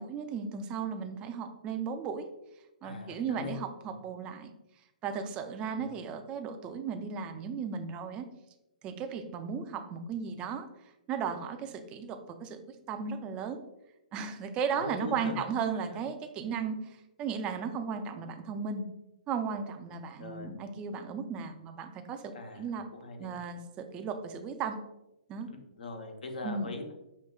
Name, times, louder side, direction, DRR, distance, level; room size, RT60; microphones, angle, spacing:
voice 1, 0.0-2.3 2.8-4.5 5.0-8.3 8.8-10.7 11.1-12.6 12.9-13.6 14.1-18.8 19.3-22.9 23.2-24.8 25.3-25.5 26.4-26.7, right 6 dB, 25° right, 7 dB, 0.4 m, -35 dB
voice 2, 2.8-3.9 5.7-5.9 14.7-15.4 15.7-16.0 20.2-20.5 22.3-23.4 25.5-26.9, left 3 dB, 80° left, 4 dB, 0.8 m, -42 dB
5.5 x 2.8 x 2.3 m, 0.91 s
hypercardioid pair, 145°, 4 cm